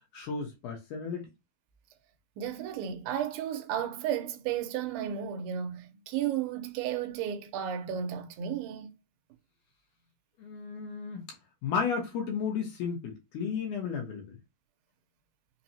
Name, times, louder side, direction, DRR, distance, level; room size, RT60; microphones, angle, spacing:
voice 1, 0.1-1.3 10.4-11.4 11.6-14.4, left 6 dB, 70° left, 2.1 m, -33 dB
voice 2, 2.4-9.0, right 9 dB, 90° right, 2.4 m, -33 dB
5.8 x 2.0 x 2.7 m
omnidirectional pair, 4.1 m